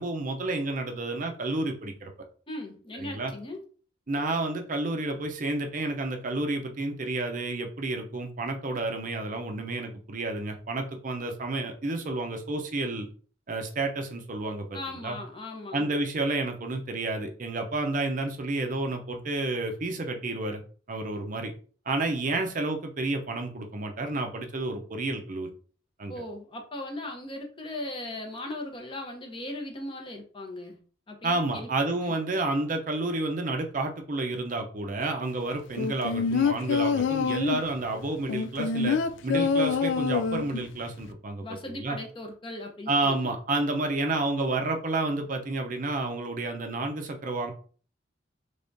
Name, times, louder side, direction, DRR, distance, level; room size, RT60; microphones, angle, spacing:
voice 1, 0.0-2.1 2.9-3.3 4.1-13.1 13.5-15.2 15.7-20.6 20.9-21.5 21.9-25.5 26.0-26.2 31.2-42.0 42.9-47.5, right 2 dB, 45° right, 4 dB, 0.5 m, -30 dB
voice 2, 2.5-3.6 14.7-15.9 26.1-30.8 31.1-31.7 32.0-32.1 41.4-43.4, left 1 dB, 25° left, 3 dB, 0.7 m, -38 dB
sound 1, 35.8-37.7 38.3-40.7 41.0-41.1, left 5 dB, 70° left, 0.3 m, -26 dB
3.5 x 3.4 x 2.6 m, 0.41 s
head